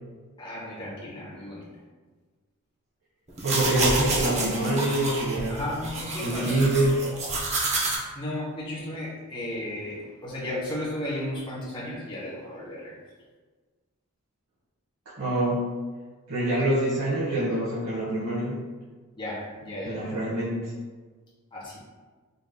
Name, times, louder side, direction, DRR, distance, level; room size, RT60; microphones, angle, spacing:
voice 1, 0.4-1.7 5.5-6.9 8.1-13.0 19.1-20.2 21.5-21.8, left 1 dB, 25° left, -7 dB, 1.4 m, -34 dB
sound 1, 3.3-8.0, right 2 dB, 30° right, 0.7 m, -29 dB
voice 2, 3.4-5.6 6.2-6.9 15.2-15.7 16.3-18.6 19.8-20.6, right 1 dB, 80° right, -10 dB, 1.2 m, -25 dB
5.3 x 3.0 x 2.2 m, 1.4 s
head